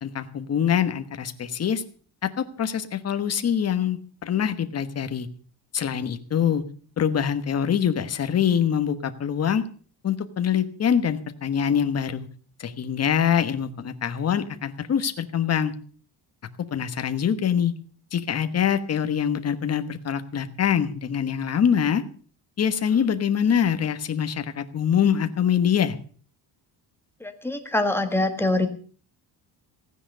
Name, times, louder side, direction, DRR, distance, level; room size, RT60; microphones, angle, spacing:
voice 1, 0.0-1.8 2.2-5.3 5.7-6.6 7.0-9.6 10.0-12.3 12.6-15.7 16.7-17.7 18.1-22.0 22.6-26.0, left 8 dB, 35° left, 10 dB, 1.2 m, -24 dB
voice 2, 27.2-28.7, left 2 dB, 5° left, 6 dB, 1.6 m, -24 dB
15.5 x 9.9 x 6.7 m, 0.43 s
cardioid pair, 160°, 44 cm